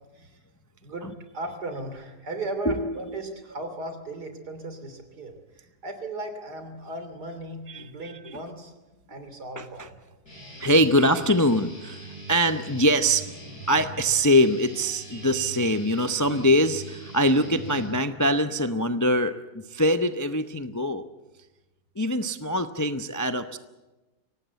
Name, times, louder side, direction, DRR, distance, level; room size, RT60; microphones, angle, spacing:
voice 1, 0.8-8.7 9.1-10.0, right 2 dB, 80° right, 8 dB, 3.5 m, -36 dB
voice 2, 2.7-3.0 7.7-7.9 8.3-8.4 9.6-9.9 10.6-13.3 13.7-21.1 22.0-23.6, equal, 20° left, 9 dB, 0.5 m, -23 dB
Guitar, 10.2-18.3, right 2 dB, 70° left, 8.8 m, -41 dB
24.0 x 18.5 x 8.2 m, 1.1 s
omnidirectional pair, 1.7 m